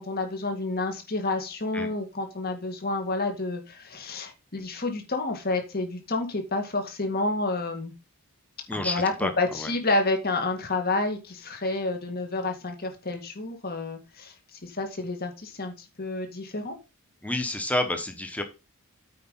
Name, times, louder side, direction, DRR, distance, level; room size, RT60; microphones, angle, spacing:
voice 1, 0.0-7.9 8.7-14.3 14.6-16.8, left 2 dB, 45° left, 5 dB, 2.0 m, -29 dB
voice 2, 8.7-9.3 9.6-9.7 17.2-18.4, left 1 dB, 5° left, 6 dB, 1.2 m, -29 dB
8.7 x 5.0 x 5.6 m, 0.28 s
head